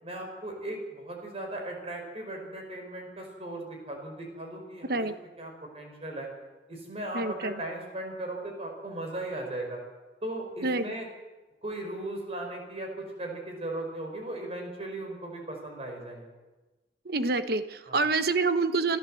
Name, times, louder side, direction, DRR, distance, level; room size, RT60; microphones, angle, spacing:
voice 1, 0.0-5.1 5.4-6.3 6.7-9.8 10.2-11.1 11.6-16.3 17.9-18.0, right 1 dB, 35° right, 2 dB, 5.3 m, -37 dB
voice 2, 7.1-7.5 10.6-10.9 17.0-19.0, right 3 dB, 60° right, 10 dB, 1.1 m, -27 dB
27.0 x 13.0 x 7.8 m, 1.2 s
head